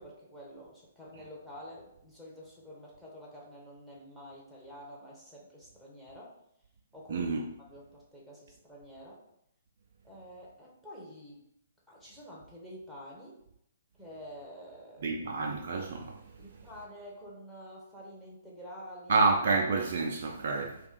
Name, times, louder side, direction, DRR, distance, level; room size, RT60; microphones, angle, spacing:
voice 1, 0.0-6.4 6.9-7.3 7.7-9.2 10.0-11.4 11.9-13.4 14.0-15.2 16.4-19.3, equal, ahead, 0.7 m, -48 dB
voice 2, 7.1-7.5 15.0-16.2 19.1-20.8, right 3 dB, 50° right, 0.3 m, -28 dB
2.4 x 2.3 x 3.5 m
figure-of-eight pair, 120°, 0 cm